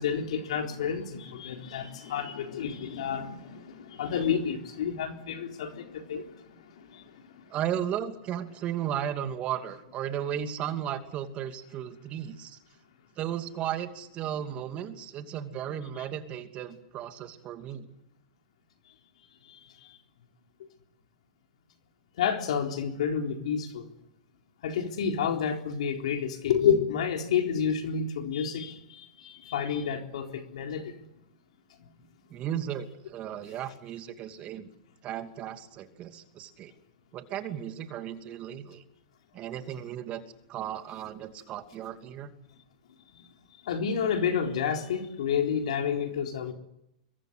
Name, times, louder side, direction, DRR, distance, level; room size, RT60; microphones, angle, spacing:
voice 1, 0.0-7.5 19.5-19.6 19.9-20.0 22.2-23.9 24.6-30.9 43.2-43.3 43.6-46.5, left 7 dB, 75° left, 4 dB, 3.9 m, -30 dB
voice 2, 7.5-12.6 13.2-17.9 32.3-34.7 35.0-36.7 37.1-38.8 39.3-40.2 40.5-42.3, right 10 dB, 35° right, 7 dB, 2.7 m, -35 dB
26.0 x 23.0 x 8.2 m, 0.81 s
hypercardioid pair, 120°, 4 cm